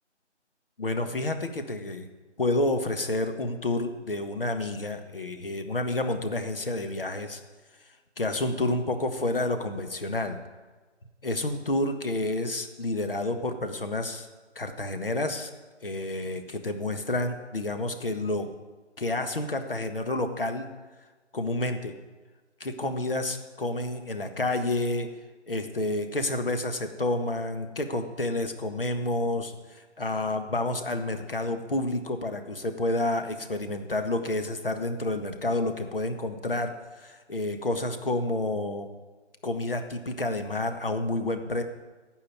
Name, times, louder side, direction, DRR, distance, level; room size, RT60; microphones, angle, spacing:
voice 1, 0.8-2.1 2.4-7.4 8.2-10.4 11.2-14.3 14.5-15.5 15.8-18.5 19.0-20.7 21.3-21.9 22.6-25.1 25.5-38.9 39.4-41.6, left 2 dB, 50° left, 6 dB, 1.5 m, -29 dB
16.0 x 5.6 x 9.5 m, 1.3 s
figure-of-eight pair, 180°, 36 cm